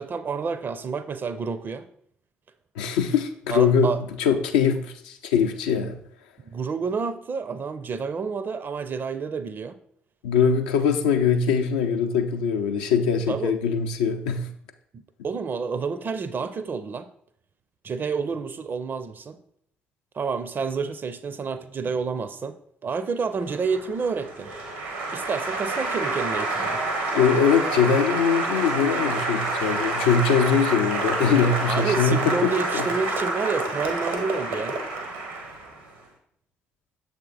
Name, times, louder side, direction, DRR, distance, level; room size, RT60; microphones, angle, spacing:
voice 1, 0.0-1.9 3.5-4.0 4.6-4.8 6.4-9.8 13.3-13.6 14.9-17.1 17.8-19.4 20.1-22.6 22.8-24.5 25.1-26.8 31.7-34.8, right 5 dB, 40° right, 13 dB, 0.5 m, -29 dB
voice 2, 2.8-3.9 4.2-6.0 10.2-14.5 27.1-32.8, left 6 dB, 75° left, 6 dB, 0.4 m, -22 dB
Applause, 23.4-35.9, right 2 dB, 80° right, 0.9 m, -28 dB
6.8 x 3.5 x 3.9 m, 0.66 s
figure-of-eight pair, 40°, 5 cm